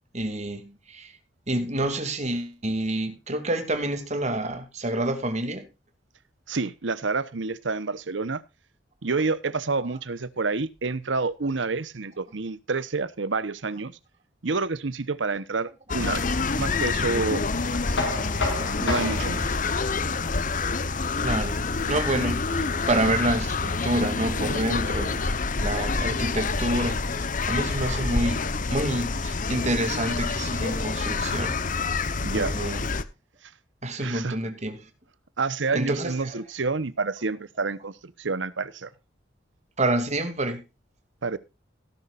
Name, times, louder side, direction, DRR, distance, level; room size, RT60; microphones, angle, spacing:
voice 1, 0.1-1.1 1.5-5.7 17.9-18.2 21.2-21.6 21.8-25.3 25.6-27.0 27.5-31.6 32.3-32.9 33.8-34.8 35.7-36.4 39.8-40.6, right 1 dB, 40° right, 2.6 m, -28 dB
voice 2, 6.5-8.4 9.0-14.0 14.4-16.2 16.5-18.0 18.8-19.6 32.2-32.5 34.0-34.4 35.4-38.9 41.2-41.4, right 4 dB, 85° right, 0.9 m, -28 dB
sound 1, 15.9-33.0, left 4 dB, 45° left, 0.9 m, -27 dB
Knock, 18.0-23.8, left 2 dB, 80° left, 5.4 m, -33 dB
17.0 x 11.0 x 2.5 m
head